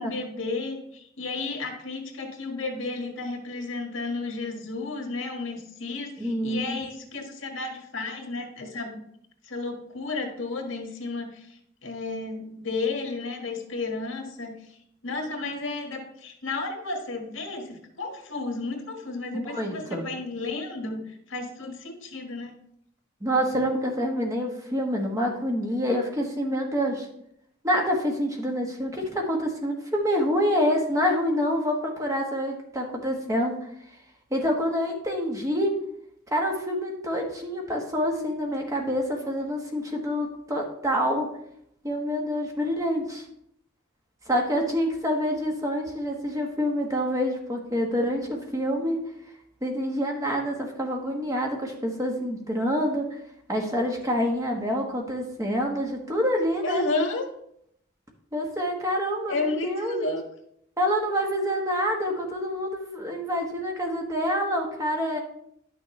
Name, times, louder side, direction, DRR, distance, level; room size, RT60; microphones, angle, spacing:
voice 1, 0.0-9.0 9.4-14.6 15.0-22.5 56.6-57.2 59.3-60.2, left 3 dB, 80° left, 2 dB, 1.6 m, -32 dB
voice 2, 6.2-6.8 19.3-20.0 23.2-27.1 27.6-33.5 34.3-35.7 36.3-41.3 41.8-43.2 44.3-49.0 49.6-53.2 53.5-56.8 58.3-60.1 60.8-65.2, equal, 15° right, 1 dB, 1.2 m, -27 dB
11.0 x 6.2 x 3.2 m, 0.72 s
head